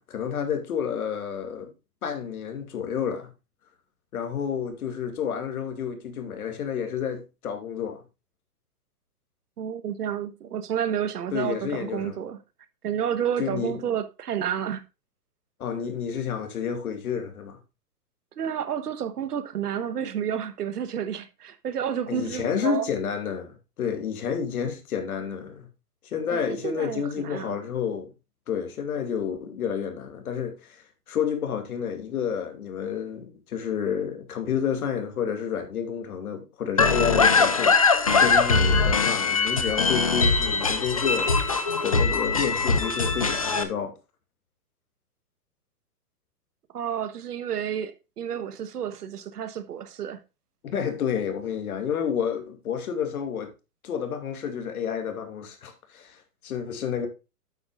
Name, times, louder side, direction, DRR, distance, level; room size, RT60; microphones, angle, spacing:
voice 1, 0.0-1.7 2.0-3.3 4.1-8.0 11.3-12.2 13.4-13.8 15.6-17.6 22.1-25.7 26.0-28.1 28.5-30.8 31.1-37.8 38.2-41.5 41.8-43.9 50.6-53.5 53.8-57.1, left 7 dB, 65° left, 2.5 m, -30 dB
voice 2, 9.6-12.4 12.8-14.8 18.4-22.9 26.3-27.6 46.7-50.2, right 9 dB, 70° right, 1.4 m, -30 dB
sound 1, 36.8-43.6, left 4 dB, 25° left, 0.3 m, -21 dB
8.8 x 8.2 x 2.5 m
hypercardioid pair, 140°, 47 cm